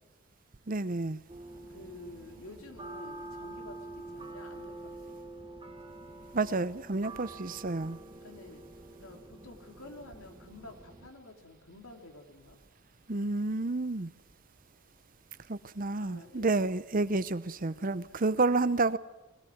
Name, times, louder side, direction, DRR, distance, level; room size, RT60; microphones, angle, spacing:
voice 1, 0.7-1.2 6.3-8.0 13.1-14.1 15.5-19.0, right 3 dB, 40° right, 0.7 m, -30 dB
sound 1, 1.3-11.1, right 2 dB, 25° right, 1.3 m, -47 dB
voice 2, 1.7-5.2 8.2-8.6 9.0-12.6 15.9-16.7 17.7-18.2, left 1 dB, 80° left, 3.3 m, -50 dB
22.0 x 17.0 x 9.4 m
head